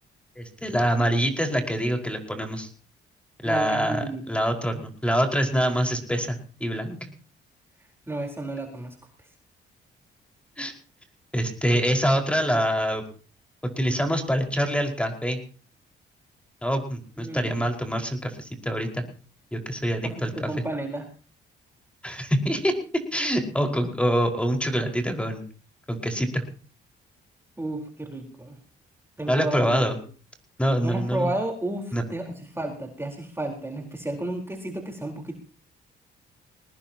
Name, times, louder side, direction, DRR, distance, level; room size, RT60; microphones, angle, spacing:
voice 1, 0.4-2.7 3.4-7.0 10.6-10.7 11.3-13.0 13.8-15.4 16.6-19.0 19.5-20.5 22.0-22.7 23.1-25.4 25.9-26.4 29.3-30.0 30.6-31.3 31.9-32.0, equal, 5° left, 3 dB, 5.2 m, -25 dB
voice 2, 3.4-4.4 8.1-9.0 17.2-17.7 20.0-21.1 27.6-28.5 29.2-30.0 30.8-35.4, right 2 dB, 10° right, 2 dB, 4.3 m, -32 dB
23.0 x 19.0 x 3.0 m, 0.39 s
cardioid pair, 90°, 20 cm